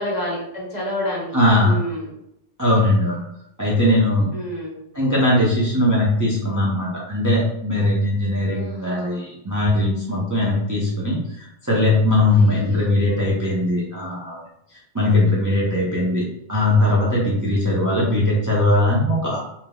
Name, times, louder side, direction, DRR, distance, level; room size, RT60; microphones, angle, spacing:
voice 1, 0.0-1.3 1.6-2.1 4.3-4.8 8.5-9.2 12.3-13.2 17.8-18.3, left 1 dB, 40° left, -5 dB, 1.0 m, -30 dB
voice 2, 1.3-1.8 2.6-3.2 3.6-4.3 4.9-14.4 14.9-19.4, left 1 dB, 20° right, -6 dB, 0.5 m, -20 dB
3.6 x 2.7 x 2.3 m, 0.79 s
omnidirectional pair, 1.3 m